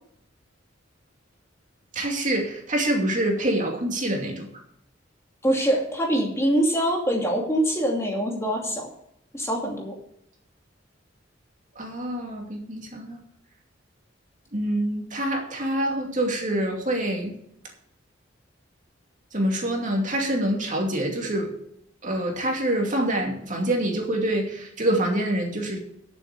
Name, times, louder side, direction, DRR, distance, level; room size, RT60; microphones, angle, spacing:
voice 1, 1.9-4.5 11.8-13.2 14.5-17.3 19.3-21.5 22.0-25.8, right 1 dB, 40° right, 1 dB, 2.6 m, -26 dB
voice 2, 5.4-8.9 9.3-10.0, right 1 dB, 15° left, 0 dB, 2.6 m, -24 dB
11.0 x 7.4 x 6.8 m, 0.74 s
head